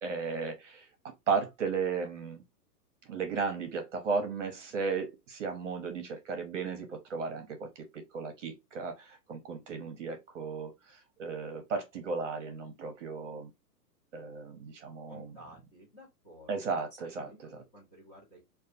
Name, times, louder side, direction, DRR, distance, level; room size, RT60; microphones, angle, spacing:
voice 1, 0.0-2.4 3.1-13.5 14.1-15.3 16.5-17.6, right 5 dB, 50° right, 0.8 m, -35 dB
voice 2, 15.1-16.5 17.0-17.4 17.7-18.4, equal, 15° left, 0.8 m, -53 dB
2.7 x 2.3 x 2.5 m
hypercardioid pair, 160°, 49 cm